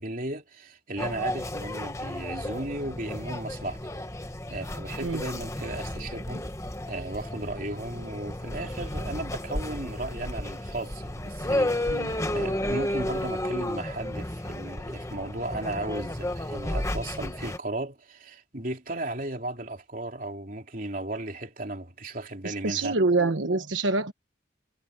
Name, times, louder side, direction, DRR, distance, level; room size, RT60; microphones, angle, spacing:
voice 1, 0.0-3.8 4.5-6.5 6.9-22.9, right 1 dB, 45° right, 3.6 m, -35 dB
sound 1, 1.0-17.6, left 1 dB, 15° left, 1.3 m, -32 dB
voice 2, 22.4-24.1, right 3 dB, 85° right, 1.2 m, -26 dB
head